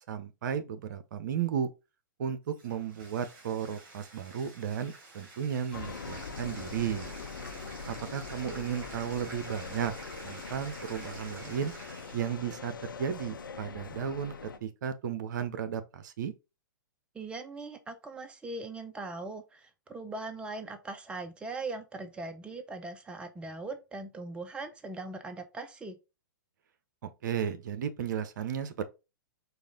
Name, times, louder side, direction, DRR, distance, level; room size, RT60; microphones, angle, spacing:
voice 1, 0.1-1.7 2.2-7.1 7.9-9.9 10.2-11.7 12.1-14.3 14.6-16.3 27.0-28.8, right 8 dB, 60° right, 0.6 m, -34 dB
Bathtub (filling or washing), 2.5-12.5, right 3 dB, 45° right, 2.2 m, -49 dB
sound 1, 5.7-14.6, left 5 dB, 85° left, 0.6 m, -42 dB
voice 2, 17.1-26.0, right 3 dB, 10° right, 0.5 m, -40 dB
4.8 x 2.5 x 3.7 m
hypercardioid pair, 115°, 11 cm